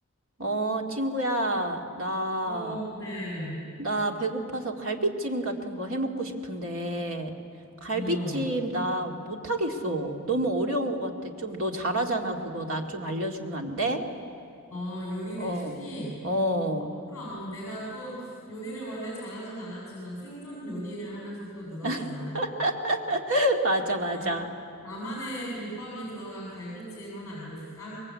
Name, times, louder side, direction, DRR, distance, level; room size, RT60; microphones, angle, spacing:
voice 1, 0.4-2.7 3.8-7.3 7.8-14.0 15.4-15.7 16.2-16.9 21.8-22.0 22.3-24.5, right 1 dB, 70° right, 2 dB, 2.4 m, -28 dB
voice 2, 2.4-3.6 7.9-8.5 14.7-16.2 16.8-22.5 24.1-24.3 24.8-28.0, equal, 15° left, -6 dB, 7.0 m, -37 dB
26.0 x 22.0 x 8.6 m, 2.5 s
head